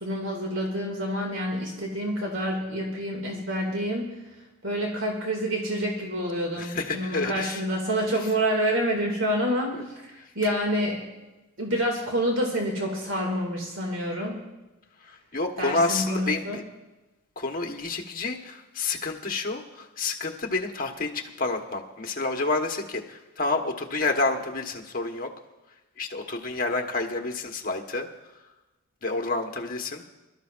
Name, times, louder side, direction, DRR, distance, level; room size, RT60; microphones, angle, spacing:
voice 1, 0.0-4.1 4.6-9.8 10.4-11.0 11.6-14.4 15.6-16.6, equal, 70° right, 0 dB, 2.3 m, -27 dB
voice 2, 6.6-7.6 9.7-9.8 15.0-16.6 17.4-25.3 26.0-28.1 29.0-30.0, left 3 dB, 45° left, 3 dB, 1.3 m, -29 dB
25.5 x 13.0 x 2.5 m, 1.1 s
head